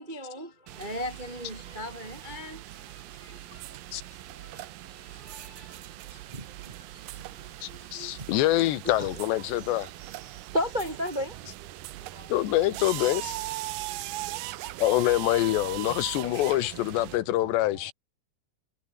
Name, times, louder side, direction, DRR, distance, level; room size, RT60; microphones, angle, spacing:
voice 1, 0.0-8.3 9.0-9.1 10.5-11.4 12.0-12.4 16.2-16.4, left 1 dB, 30° right, 0.8 m, -37 dB
sound 1, 0.7-17.2, right 17 dB, 85° right, 1.9 m, -40 dB
voice 2, 7.6-9.9 12.3-13.4 14.8-17.9, left 15 dB, 85° left, 3.4 m, -25 dB
voice 3, 9.4-10.6 11.3-11.4 11.7-13.2 13.7-14.8 15.9-17.9, right 10 dB, 70° right, 2.1 m, -50 dB
omnidirectional pair, 4.9 m